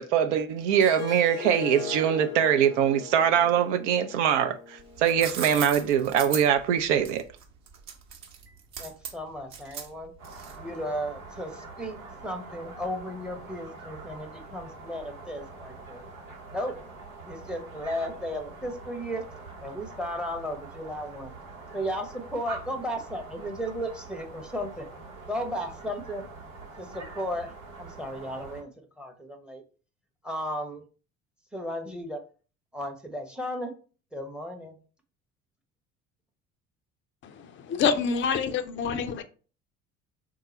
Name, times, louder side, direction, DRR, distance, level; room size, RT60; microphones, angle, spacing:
voice 1, 0.0-7.2, right 9 dB, 60° right, 0.5 m, -23 dB
Harp, 0.7-5.9, left 7 dB, 75° left, 0.6 m, -40 dB
sound 1, 4.8-10.8, right 7 dB, 40° right, 0.9 m, -38 dB
voice 2, 8.8-10.1 10.6-12.0 12.2-16.0 16.5-16.7 17.2-19.2 19.6-21.3 21.7-24.9 25.3-26.3 26.8-27.5 27.8-28.7 29.0-29.6 30.2-30.8 31.5-32.2 32.7-33.7 34.1-34.8, equal, ahead, 0.7 m, -34 dB
sound 2, 10.2-28.6, right 3 dB, 80° right, 0.9 m, -44 dB
voice 3, 37.2-39.2, left 6 dB, 30° left, 0.4 m, -27 dB
3.6 x 2.3 x 4.1 m
figure-of-eight pair, 60°, 41 cm